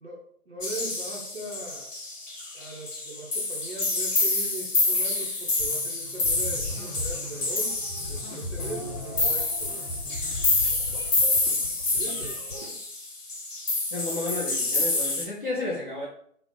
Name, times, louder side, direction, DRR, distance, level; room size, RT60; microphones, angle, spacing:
voice 1, 0.0-1.9 2.5-7.8 8.1-9.9 11.9-12.4, right 2 dB, 50° right, -5 dB, 0.6 m, -40 dB
sound 1, 0.6-15.3, left 3 dB, 55° left, 0.9 m, -28 dB
sound 2, 5.6-11.4, left 2 dB, 85° left, 0.8 m, -38 dB
sound 3, 7.6-12.7, left 1 dB, 10° left, 1.0 m, -42 dB
voice 2, 13.9-16.1, left 2 dB, 35° left, -8 dB, 0.5 m, -32 dB
2.6 x 2.0 x 3.5 m, 0.64 s
figure-of-eight pair, 160°, 45 cm